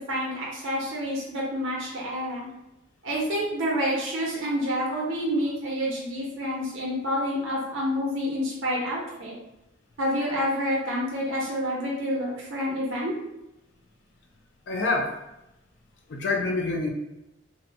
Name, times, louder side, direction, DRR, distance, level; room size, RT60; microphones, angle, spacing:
voice 1, 0.1-2.5 3.0-9.3 10.0-13.1, equal, 85° right, -4 dB, 0.8 m, -28 dB
voice 2, 14.7-15.1 16.1-16.9, left 3 dB, 60° left, 1 dB, 0.4 m, -26 dB
2.7 x 2.1 x 2.6 m, 0.92 s
head